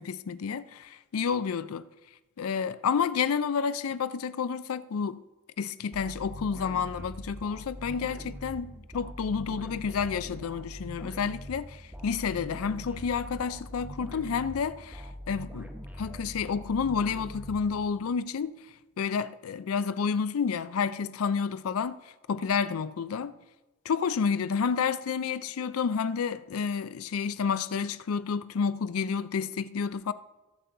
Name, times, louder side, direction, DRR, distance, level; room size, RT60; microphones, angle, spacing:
voice 1, 0.0-1.9 2.4-5.2 5.6-15.7 16.0-18.6 19.0-22.0 22.3-23.3 23.9-30.1, left 6 dB, 85° left, 0.4 m, -30 dB
sound 1, 5.9-18.2, equal, 10° right, 0.9 m, -42 dB
17.5 x 6.9 x 3.8 m
head